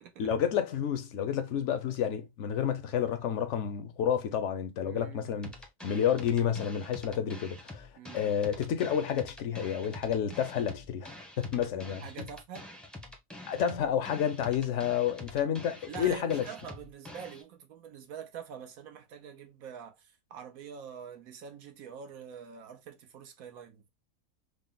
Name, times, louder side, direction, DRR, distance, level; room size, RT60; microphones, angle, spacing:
voice 1, 0.2-5.5 5.8-7.9 8.1-11.1 11.4-12.0 13.5-16.5, left 8 dB, 65° left, 0.8 m, -30 dB
voice 2, 4.8-5.3 8.0-8.3 12.0-12.7 15.9-23.9, right 7 dB, 75° right, 1.2 m, -45 dB
sound 1, 5.4-17.4, left 1 dB, ahead, 0.6 m, -47 dB
3.9 x 2.1 x 3.7 m
omnidirectional pair, 1.5 m